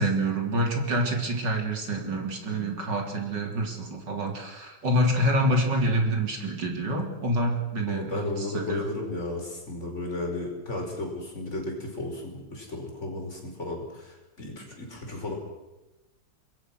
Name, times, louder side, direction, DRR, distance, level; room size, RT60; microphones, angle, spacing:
voice 1, 0.0-8.9, right 1 dB, 60° right, 2 dB, 4.1 m, -27 dB
voice 2, 7.9-15.3, left 2 dB, 35° left, 1 dB, 5.4 m, -34 dB
26.0 x 21.5 x 6.3 m, 1.0 s
omnidirectional pair, 2.1 m